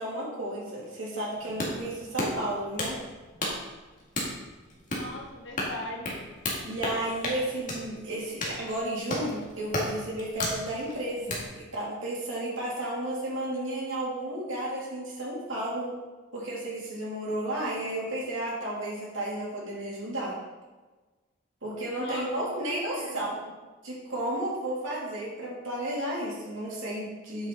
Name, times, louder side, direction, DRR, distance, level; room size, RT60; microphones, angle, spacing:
voice 1, 0.0-3.0 6.6-11.4 11.7-15.9 16.3-20.4 21.6-23.4 23.8-27.5, right 1 dB, 70° right, -5 dB, 2.9 m, -33 dB
sound 1, 1.4-11.5, left 1 dB, 40° left, 2.0 m, -34 dB
voice 2, 4.9-6.3 22.0-23.2, left 1 dB, 60° left, -2 dB, 1.8 m, -40 dB
8.6 x 6.7 x 4.1 m, 1.3 s
head